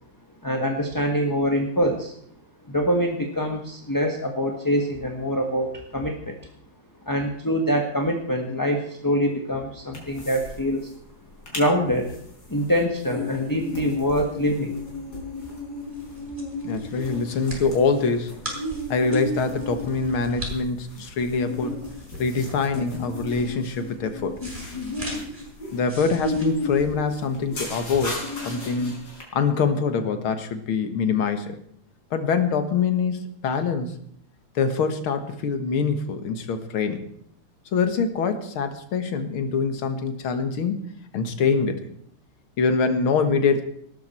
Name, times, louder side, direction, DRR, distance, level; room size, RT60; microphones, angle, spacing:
voice 1, 0.4-2.1 2.7-6.4 7.1-10.9 11.5-12.1 12.5-14.8, equal, 10° left, 2 dB, 1.3 m, -24 dB
sound 1, 9.9-10.6 10.8-10.9 11.3-11.7 12.1-29.2, left 1 dB, 50° left, 4.8 m, -33 dB
sound 2, 15.5-27.5, right 1 dB, 20° right, 5.8 m, -41 dB
voice 2, 16.6-18.3 18.9-21.8 22.2-24.4 25.7-28.1 28.4-29.0 29.3-31.6 32.1-34.0 34.6-37.0 37.7-40.8 41.1-41.9 42.6-43.6, left 5 dB, 80° left, 8 dB, 2.3 m, -24 dB
18.5 x 13.0 x 4.4 m, 0.67 s
omnidirectional pair, 2.3 m